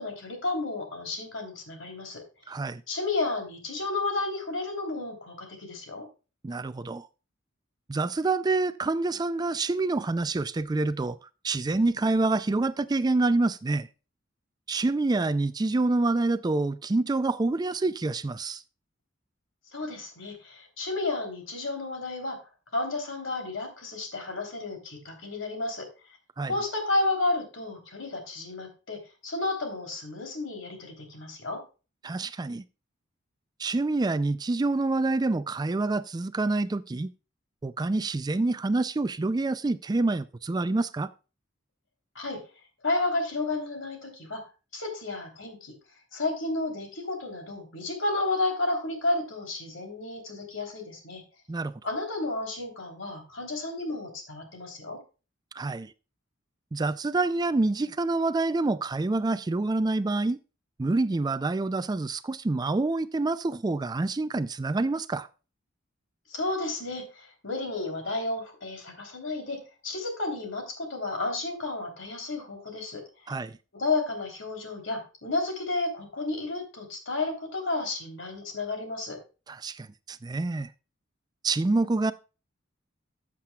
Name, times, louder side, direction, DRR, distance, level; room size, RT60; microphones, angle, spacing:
voice 1, 0.0-2.2 2.9-6.1 19.7-22.4 22.7-25.9 26.4-31.6 42.1-42.4 42.8-44.4 44.7-45.7 46.1-51.2 51.8-55.0 66.3-73.3 73.7-79.2, left 2 dB, 70° left, 3.3 m, -32 dB
voice 2, 2.5-2.8 6.4-7.1 7.9-11.2 11.4-13.9 14.7-18.6 26.4-26.5 32.0-32.6 33.6-37.1 37.6-41.1 51.5-51.8 55.5-55.9 56.7-60.4 60.8-65.3 73.3-73.5 79.5-80.7 81.4-82.1, right 3 dB, 20° right, 0.3 m, -27 dB
14.0 x 7.5 x 2.3 m
head